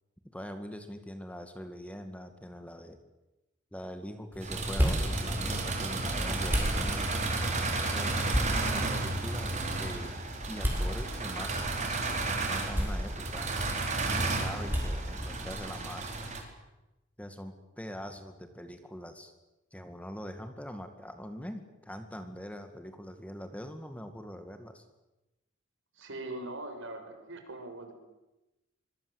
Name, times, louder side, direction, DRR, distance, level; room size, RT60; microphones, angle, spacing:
voice 1, 0.3-3.0 3.7-7.1 7.9-8.2 8.7-12.0 12.4-13.5 14.0-16.1 17.2-19.3 19.7-24.8, equal, 5° left, 7 dB, 2.1 m, -43 dB
sound 1, 4.3-15.4, equal, 10° right, 7.6 m, -35 dB
sound 2, 4.4-16.4, right 3 dB, 35° right, 4.6 m, -33 dB
voice 2, 25.9-27.9, right 2 dB, 65° right, 6 dB, 5.7 m, -41 dB
25.5 x 23.0 x 8.1 m, 1.0 s
head